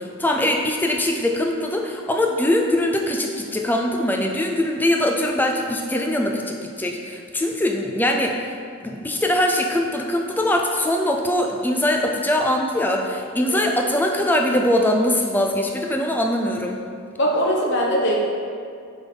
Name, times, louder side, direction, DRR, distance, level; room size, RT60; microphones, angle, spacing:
voice 1, 0.0-8.3 8.8-16.8, left 1 dB, 10° left, 1 dB, 0.4 m, -22 dB
voice 2, 17.2-18.1, equal, 50° left, -2 dB, 0.9 m, -21 dB
7.1 x 3.5 x 3.8 m, 2.3 s
head